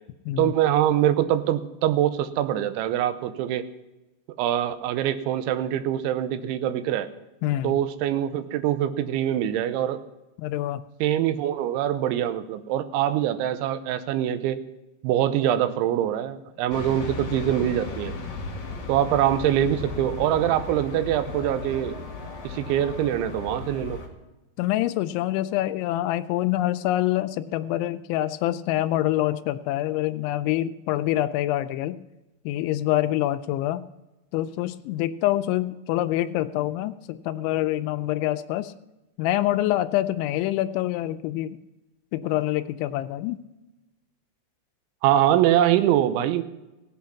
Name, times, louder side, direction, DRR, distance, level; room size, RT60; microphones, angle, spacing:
voice 1, 0.4-3.7 4.4-7.1 7.6-10.0 11.0-14.6 15.0-18.1 18.9-22.0 22.4-24.0 45.0-46.4, right 11 dB, 85° right, 12 dB, 3.1 m, -24 dB
voice 2, 7.4-7.8 10.4-10.8 24.6-32.0 32.5-33.8 34.3-38.7 39.2-41.6 42.1-43.4, left 14 dB, 85° left, 10 dB, 3.0 m, -26 dB
sound 1, 16.7-24.1, left 3 dB, 45° left, 3.2 m, -35 dB
17.5 x 8.3 x 5.7 m, 1.0 s
omnidirectional pair, 5.4 m